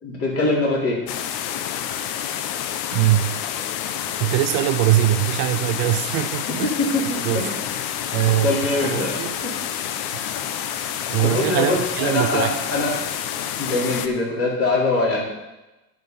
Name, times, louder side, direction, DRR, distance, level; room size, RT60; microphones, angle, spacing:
voice 1, 0.0-1.0 6.6-7.6 8.3-9.1 9.4-9.5 11.2-12.9 13.6-15.2, left 2 dB, 30° left, -4 dB, 4.1 m, -23 dB
sound 1, 1.1-14.1, left 10 dB, 50° left, 0.9 m, -28 dB
voice 2, 2.9-3.4 4.2-6.7 7.2-7.4 8.1-9.4 10.1-10.3 10.9-12.6, right 15 dB, 50° right, 7 dB, 0.6 m, -22 dB
11.0 x 6.1 x 5.3 m, 1.0 s
supercardioid pair, 125°, 47 cm